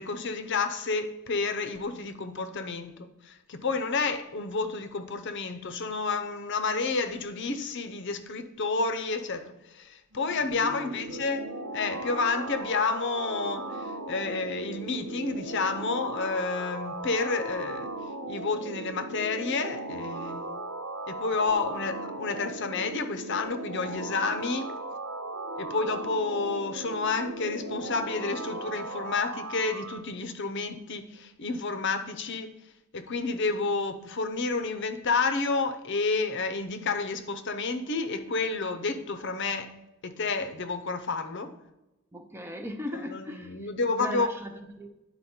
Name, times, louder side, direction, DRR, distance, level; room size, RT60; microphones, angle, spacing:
voice 1, 0.0-17.9 18.3-20.5 21.1-24.7 25.6-32.5 32.9-39.7 40.0-41.5 42.9-44.3, left 4 dB, 55° left, 0.7 m, -30 dB
sound 1, 10.1-30.0, right 2 dB, 75° right, 0.7 m, -37 dB
voice 2, 10.4-11.2 42.1-43.7 44.0-45.0, equal, 10° right, 0.5 m, -38 dB
9.8 x 4.3 x 4.3 m
head